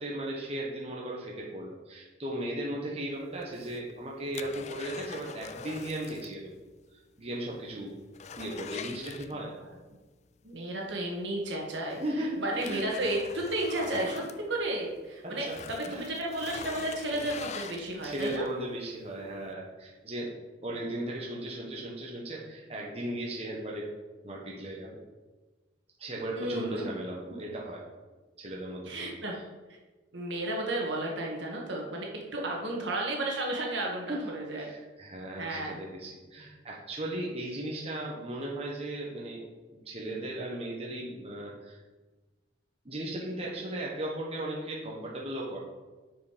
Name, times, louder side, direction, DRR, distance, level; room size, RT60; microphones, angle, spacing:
voice 1, 0.0-6.5 7.2-7.9 8.4-9.5 12.0-12.9 14.1-14.3 15.2-15.6 15.9-16.1 17.7-20.3 20.6-23.9 24.2-25.0 26.0-27.8 28.4-29.1 34.1-34.3 34.6-39.4 39.8-41.8 42.8-45.6, right 1 dB, 30° right, -3 dB, 1.3 m, -36 dB
sound 1, 3.4-6.4 6.7-6.8 7.3-7.4 7.7-9.7 11.2-11.3 11.9-15.0 15.4-18.7 19.2-19.3, left 6 dB, 35° left, 0.3 m, -43 dB
voice 2, 10.4-18.5 26.3-27.0 28.9-29.3 30.1-34.7 35.4-35.8, right 1 dB, 75° right, 0 dB, 1.9 m, -33 dB
9.1 x 5.1 x 5.2 m, 1.3 s
head